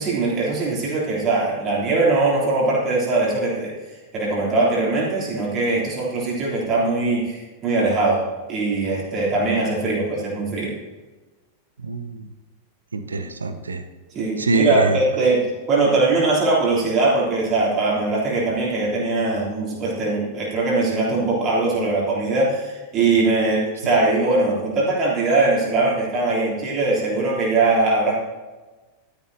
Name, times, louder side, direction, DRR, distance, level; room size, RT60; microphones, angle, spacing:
voice 1, 0.0-3.7 4.1-8.2 8.5-10.7 14.1-28.2, right 3 dB, 30° right, -5 dB, 3.3 m, -21 dB
voice 2, 11.8-12.3 12.9-13.8 14.4-15.0, right 3 dB, 75° right, 9 dB, 0.7 m, -24 dB
12.5 x 10.5 x 2.8 m, 1.2 s
figure-of-eight pair, 90°, 0 cm